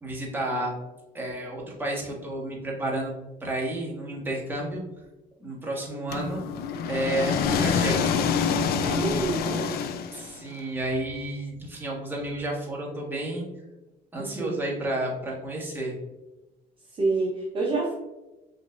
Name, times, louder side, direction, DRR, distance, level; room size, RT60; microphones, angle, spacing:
voice 1, 0.0-0.7 1.1-4.8 5.4-6.4 6.9-8.2 10.1-13.4 14.1-15.9, right 1 dB, 10° right, -3 dB, 1.3 m, -31 dB
sound 1, 6.1-10.5, left 6 dB, 65° left, 0.4 m, -26 dB
voice 2, 8.8-9.8 14.2-14.6 16.9-18.0, right 3 dB, 30° right, -4 dB, 0.9 m, -28 dB
5.1 x 3.2 x 2.5 m, 1.0 s
cardioid pair, 110°, 17 cm